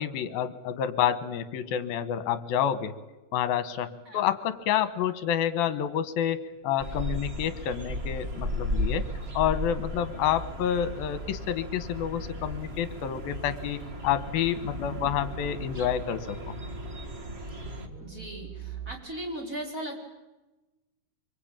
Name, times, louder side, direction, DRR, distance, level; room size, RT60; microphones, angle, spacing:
voice 1, 0.0-2.9 3.3-9.1 9.3-16.5, left 9 dB, 70° left, 12 dB, 3.0 m, -29 dB
sound 1, 6.8-17.9, equal, 55° right, 0.6 m, -35 dB
sound 2, 9.9-19.0, right 5 dB, 90° right, 7.4 m, -46 dB
voice 2, 18.0-20.0, right 1 dB, 20° right, 1 dB, 5.0 m, -37 dB
24.5 x 24.5 x 9.0 m, 1.1 s
omnidirectional pair, 4.6 m